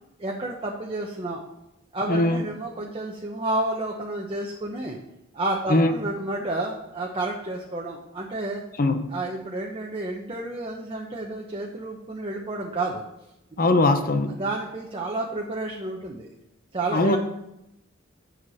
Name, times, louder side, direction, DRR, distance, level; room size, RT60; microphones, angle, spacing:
voice 1, 0.2-1.4 1.9-5.0 5.3-8.6 9.1-13.0 14.4-16.3 16.7-17.2, right 2 dB, 25° right, -1 dB, 1.0 m, -30 dB
voice 2, 2.1-2.4 5.7-5.9 8.8-9.1 13.6-14.4 16.9-17.2, left 2 dB, 45° left, 8 dB, 0.9 m, -21 dB
8.0 x 6.7 x 5.6 m, 0.87 s
head